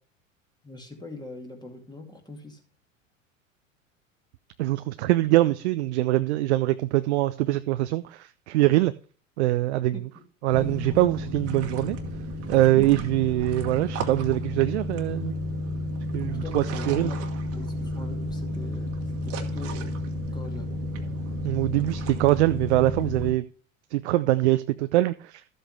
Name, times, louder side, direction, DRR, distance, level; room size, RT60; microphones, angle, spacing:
voice 1, 0.6-2.6 9.9-10.0 12.8-13.0 16.2-17.2 17.5-20.0 20.3-20.7, left 2 dB, 10° left, 2.2 m, -41 dB
voice 2, 4.6-8.9 9.4-9.9 10.4-12.0 12.5-15.4 16.1-17.1 21.4-23.5 23.9-25.5, right 16 dB, 55° right, 0.5 m, -23 dB
sound 1, 10.5-23.3, left 1 dB, 35° right, 1.5 m, -32 dB
13.0 x 7.7 x 3.3 m
figure-of-eight pair, 80°, 40 cm